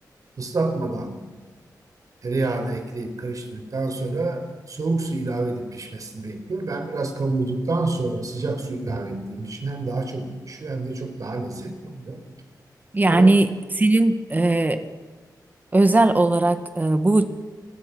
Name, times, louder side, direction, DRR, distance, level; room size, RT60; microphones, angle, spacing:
voice 1, 0.4-1.1 2.2-12.2 13.0-13.4, right 3 dB, 55° right, 6 dB, 4.6 m, -28 dB
voice 2, 12.9-14.8 15.7-17.2, right 2 dB, 25° right, 9 dB, 1.7 m, -18 dB
30.0 x 20.0 x 6.3 m, 1.3 s
wide cardioid pair, 110°, 7 cm